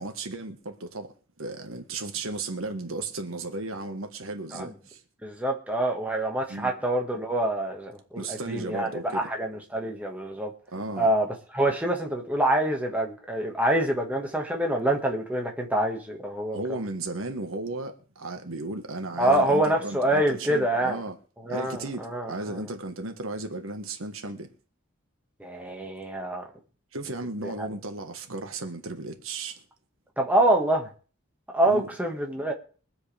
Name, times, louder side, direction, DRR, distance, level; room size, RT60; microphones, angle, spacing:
voice 1, 0.0-5.0 6.5-6.7 8.2-9.3 10.7-11.1 16.5-21.2 21.5-24.5 26.9-29.6 31.6-31.9, right 2 dB, 85° right, 1.6 m, -35 dB
voice 2, 5.2-10.5 11.0-11.3 11.5-16.9 19.2-21.0 21.4-22.7 25.4-26.5 27.4-27.7 30.2-30.9 31.5-32.5, right 1 dB, 5° right, 1.9 m, -26 dB
23.5 x 7.9 x 3.5 m
head